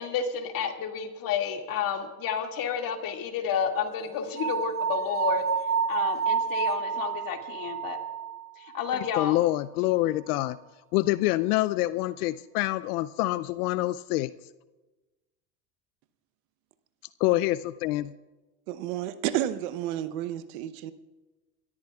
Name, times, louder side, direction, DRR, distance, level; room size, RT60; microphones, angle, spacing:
voice 1, 0.0-5.4 5.9-8.0 8.6-9.4, left 7 dB, 45° left, 3 dB, 2.2 m, -31 dB
sound 1, 4.4-9.5, right 6 dB, 30° right, 0.8 m, -30 dB
voice 2, 8.9-10.6 10.9-14.3 17.2-18.1, left 17 dB, 75° left, 17 dB, 0.5 m, -26 dB
voice 3, 18.7-20.9, right 12 dB, 70° right, 13 dB, 0.9 m, -31 dB
28.5 x 13.5 x 2.3 m, 1.2 s
hypercardioid pair, 95°, 46 cm